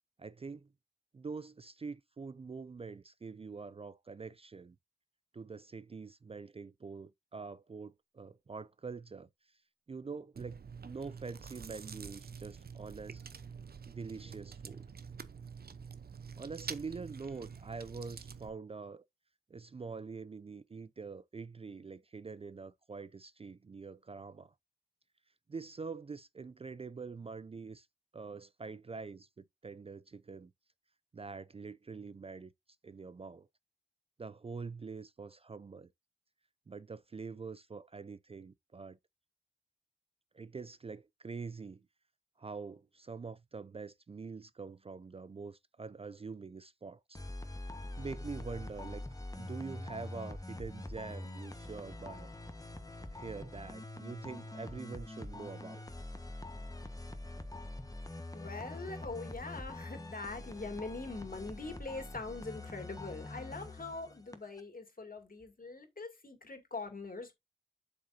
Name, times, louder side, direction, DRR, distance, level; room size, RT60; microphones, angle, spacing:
voice 1, 0.2-0.7 1.1-4.8 5.3-9.6 9.9-13.2 13.9-14.9 16.4-19.0 19.5-24.5 25.5-27.9 28.1-30.5 31.1-32.5 32.8-33.5 34.2-35.9 36.7-39.0 40.3-41.9 42.4-47.2 48.0-49.0 49.4-52.3 53.1-55.8, right 4 dB, 30° right, 0.4 m, -45 dB
Chewing mastication, 10.3-18.5, right 6 dB, 60° right, 0.8 m, -47 dB
sound 1, 47.1-64.6, left 2 dB, 20° left, 1.3 m, -45 dB
voice 2, 58.3-67.3, left 3 dB, 50° left, 2.5 m, -43 dB
7.9 x 6.6 x 2.7 m
cardioid pair, 45°, 18 cm